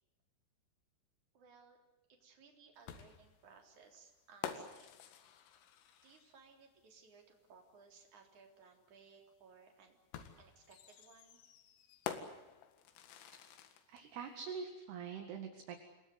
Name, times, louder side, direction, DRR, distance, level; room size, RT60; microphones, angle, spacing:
voice 1, 1.3-1.8 2.1-5.0 6.0-10.0 10.4-11.4, right 5 dB, 40° right, 3 dB, 4.7 m, -62 dB
sound 1, 2.9-6.5 8.0-8.1 10.1-14.0, left 9 dB, 80° left, 4.4 m, -48 dB
voice 2, 13.9-15.8, right 6 dB, 60° right, 5 dB, 3.6 m, -44 dB
28.0 x 20.5 x 8.0 m, 1.0 s
omnidirectional pair, 5.7 m